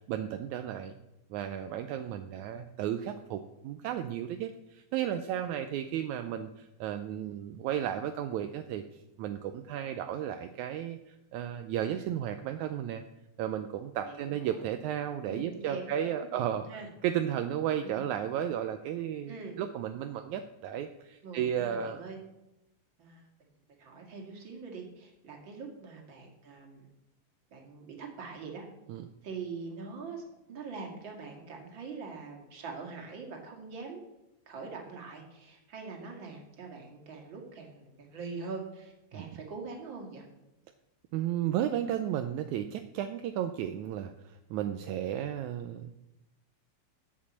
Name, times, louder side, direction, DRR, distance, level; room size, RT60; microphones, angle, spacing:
voice 1, 0.1-0.9 1.3-8.8 9.2-13.0 13.4-16.7 17.0-22.0 28.9-29.1 39.1-39.3 41.1-45.9, right 10 dB, 80° right, 8 dB, 2.0 m, -34 dB
voice 2, 14.0-14.8 15.3-16.9 17.8-18.1 19.3-19.6 21.2-22.2 23.0-23.2 23.8-26.9 27.5-28.7 29.2-30.2 30.5-34.0 34.5-40.2, right 4 dB, 40° right, 0 dB, 2.7 m, -43 dB
9.5 x 8.5 x 7.4 m, 0.94 s
omnidirectional pair, 3.5 m